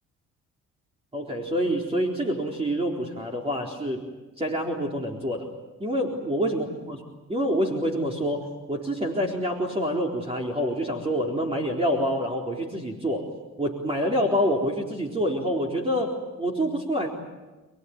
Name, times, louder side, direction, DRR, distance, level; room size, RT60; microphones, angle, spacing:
voice 1, 1.1-4.0 4.4-5.5 5.8-7.0 7.3-13.3 13.6-17.1, equal, 20° right, 0 dB, 4.1 m, -27 dB
29.5 x 19.5 x 9.6 m, 1.2 s
cardioid pair, 90°, 30 cm